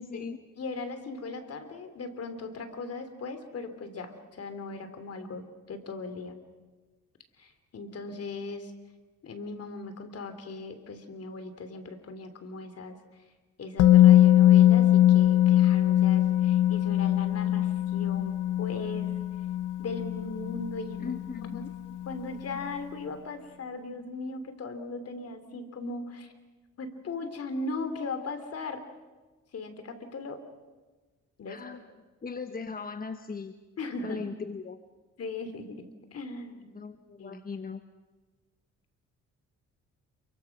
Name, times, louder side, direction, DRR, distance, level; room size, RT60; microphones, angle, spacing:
voice 1, 0.0-0.4 21.0-21.7 31.5-31.8 32.2-33.6 34.0-34.8 36.7-37.8, left 5 dB, 30° left, 9 dB, 1.1 m, -38 dB
voice 2, 0.6-6.4 7.4-8.7 9.2-13.0 13.6-19.1 19.8-21.1 21.5-21.6 22.1-26.3 26.8-28.8 29.5-30.4 31.4-31.6 33.8-34.2 35.2-36.7 37.2-37.4, left 3 dB, 55° left, 9 dB, 3.3 m, -38 dB
Musical instrument, 13.8-21.7 22.0-22.1, left 12 dB, 85° left, 0.7 m, -21 dB
28.0 x 24.0 x 6.1 m, 1.3 s
cardioid pair, 90°, 30 cm